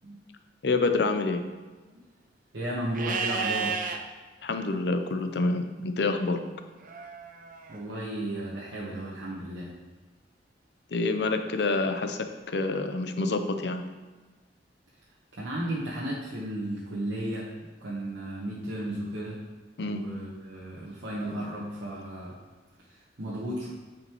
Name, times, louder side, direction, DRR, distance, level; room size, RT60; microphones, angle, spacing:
voice 1, 0.6-1.4 4.4-6.4 10.9-12.2 12.5-13.8 19.8-20.0, left 3 dB, 65° left, 7 dB, 0.6 m, -27 dB
voice 2, 2.5-3.8 7.7-9.7 15.3-17.5 17.8-19.4 19.8-22.3 22.9-23.7, right 1 dB, 75° right, -7 dB, 1.2 m, -34 dB
Livestock farm animals working animals, 2.9-4.0 6.8-7.8, right 5 dB, 50° right, 0.6 m, -32 dB
9.2 x 5.2 x 3.0 m, 1.3 s
head